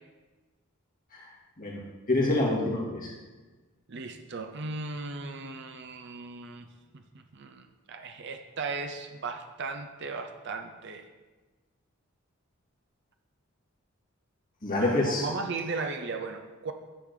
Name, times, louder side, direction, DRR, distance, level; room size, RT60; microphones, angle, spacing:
voice 1, 2.1-3.1 14.6-15.3, left 2 dB, 40° left, -4 dB, 2.1 m, -26 dB
voice 2, 3.9-6.7 6.9-11.0 14.8-16.7, right 4 dB, 55° right, 6 dB, 0.6 m, -37 dB
10.0 x 3.9 x 6.6 m, 1.2 s
head